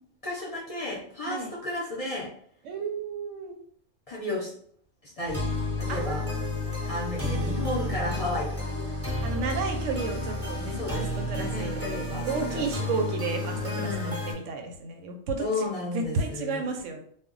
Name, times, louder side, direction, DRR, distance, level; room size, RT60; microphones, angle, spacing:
voice 1, 0.2-2.3 4.1-4.5 5.0-5.4 5.8-6.2 6.8-8.8 10.7-12.9 13.6-14.2 15.4-16.7, left 2 dB, 40° left, -5 dB, 0.5 m, -33 dB
voice 2, 2.6-3.6 5.9-7.1 9.2-11.8 12.2-15.6 15.9-17.0, right 4 dB, 85° right, 4 dB, 0.9 m, -33 dB
sound 1, 5.3-14.3, left 1 dB, 15° right, 0.5 m, -31 dB
2.2 x 2.1 x 3.7 m, 0.62 s
omnidirectional pair, 1.2 m